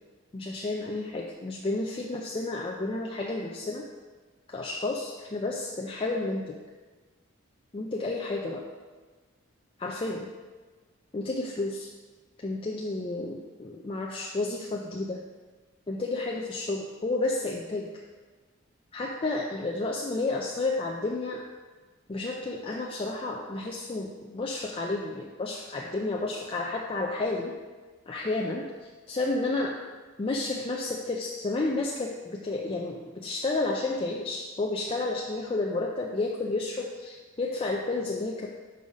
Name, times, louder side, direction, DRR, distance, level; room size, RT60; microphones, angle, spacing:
voice 1, 0.3-3.9 4.5-6.6 7.7-8.7 9.8-10.3 11.1-11.9 12.4-15.2 15.9-17.9 18.9-21.4 22.1-27.5 28.1-29.8 30.2-38.5, left 2 dB, 25° left, -1 dB, 0.4 m, -31 dB
5.5 x 5.4 x 4.9 m, 1.3 s
head